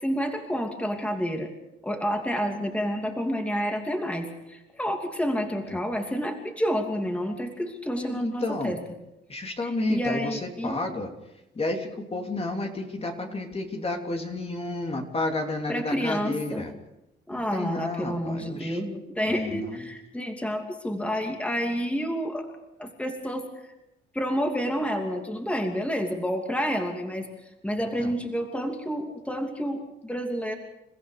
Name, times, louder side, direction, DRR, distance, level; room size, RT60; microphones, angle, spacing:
voice 1, 0.0-1.5 1.8-8.8 9.6-10.8 15.7-16.7 17.3-22.5 22.8-23.7 24.1-27.3 27.6-30.5, equal, 5° left, 3 dB, 2.8 m, -29 dB
voice 2, 7.9-8.7 9.3-11.1 11.5-16.7 17.3-18.8 19.2-19.8 27.8-28.1, left 2 dB, 30° left, 3 dB, 3.2 m, -31 dB
28.5 x 15.0 x 6.7 m, 0.91 s
cardioid pair, 90°, 20 cm